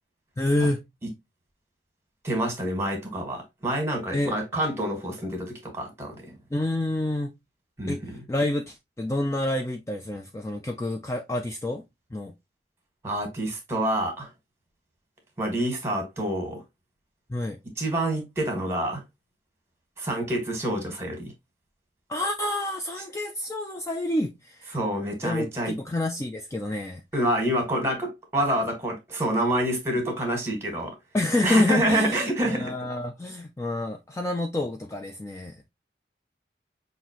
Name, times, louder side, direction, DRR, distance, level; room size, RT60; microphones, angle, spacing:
voice 1, 0.4-0.8 4.1-4.3 6.5-7.3 7.9-11.8 12.1-12.3 17.3-17.6 22.1-24.8 25.2-27.0 31.1-35.5, left 1 dB, 15° left, 0.4 m, -28 dB
voice 2, 2.2-6.3 7.8-8.2 13.0-14.3 15.4-16.6 17.8-19.0 20.0-21.3 24.7-25.7 27.1-30.9 31.4-32.7, right 1 dB, 15° right, 1.6 m, -27 dB
5.7 x 2.6 x 2.9 m
head